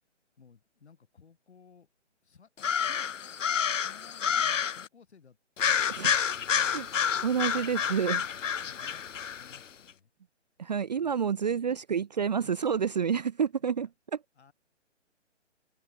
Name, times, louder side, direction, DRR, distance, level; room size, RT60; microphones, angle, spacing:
voice 1, 0.4-1.9 2.2-3.1 3.4-3.5 3.8-6.8 7.3-7.7 8.3-10.1 11.0-12.1 12.4-12.5 13.8-13.9 14.4-14.5, left 6 dB, 60° left, 7.0 m, -57 dB
sound 1, 2.6-4.9 5.6-9.6, left 8 dB, 90° left, 0.6 m, -29 dB
voice 2, 7.2-8.3 10.6-14.2, right 7 dB, 35° right, 0.5 m, -29 dB
open air
figure-of-eight pair, 145°, 36 cm